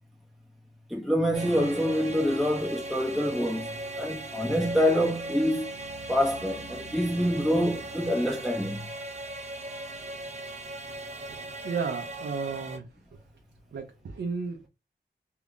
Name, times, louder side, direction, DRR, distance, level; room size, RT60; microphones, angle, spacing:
voice 1, 0.9-3.7 4.0-5.7 6.1-8.9, equal, ahead, 0.5 m, -26 dB
sound 1, 1.3-12.8, right 2 dB, 40° right, 0.6 m, -38 dB
voice 2, 11.2-13.2 13.7-14.7, right 5 dB, 85° right, 0.6 m, -34 dB
2.9 x 2.5 x 3.5 m
wide cardioid pair, 150°, 17 cm